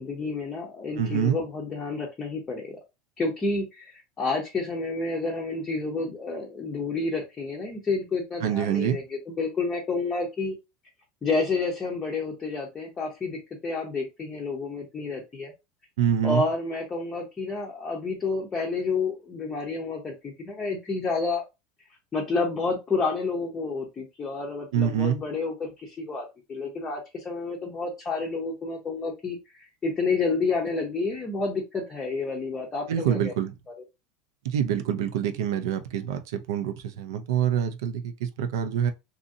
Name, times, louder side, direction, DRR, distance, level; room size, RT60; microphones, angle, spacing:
voice 1, 0.0-2.8 3.2-10.5 11.2-15.5 16.2-21.4 22.1-33.3, left 3 dB, 15° left, 0.6 m, -30 dB
voice 2, 1.0-1.4 8.4-9.0 16.0-16.4 24.7-25.2 32.9-33.5 34.4-38.9, right 9 dB, 85° right, 0.5 m, -26 dB
2.7 x 2.6 x 2.5 m
supercardioid pair, 170°, 2 cm